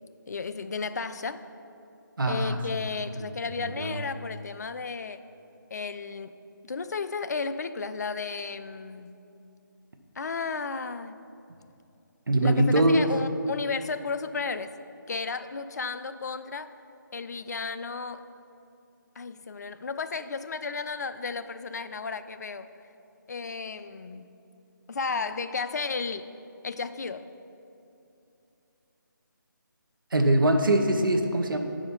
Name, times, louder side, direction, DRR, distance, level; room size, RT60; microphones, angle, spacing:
voice 1, 0.3-1.4 2.3-5.2 5.7-6.4 6.6-9.1 10.2-11.2 12.4-14.7 15.1-16.7 17.1-18.3 19.2-22.7 23.3-24.3 24.9-26.3 26.6-27.3, left 4 dB, 50° left, 11 dB, 0.4 m, -33 dB
voice 2, 2.2-2.6 3.8-4.0 12.3-13.1 30.1-31.6, right 1 dB, 75° right, 5 dB, 0.8 m, -22 dB
7.8 x 5.0 x 5.5 m, 2.7 s
figure-of-eight pair, 160°, 11 cm